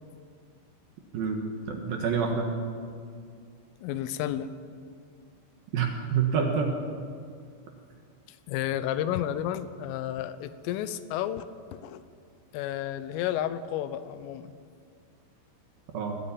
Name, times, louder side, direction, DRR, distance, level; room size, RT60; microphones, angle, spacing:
voice 1, 1.1-2.5 5.7-6.7 15.9-16.2, right 6 dB, 60° right, 2 dB, 2.8 m, -27 dB
voice 2, 3.8-4.5 8.5-11.5 11.7-12.0 12.5-14.5, left 11 dB, 85° left, 13 dB, 3.4 m, -31 dB
21.5 x 14.5 x 8.8 m, 2.2 s
omnidirectional pair, 5.7 m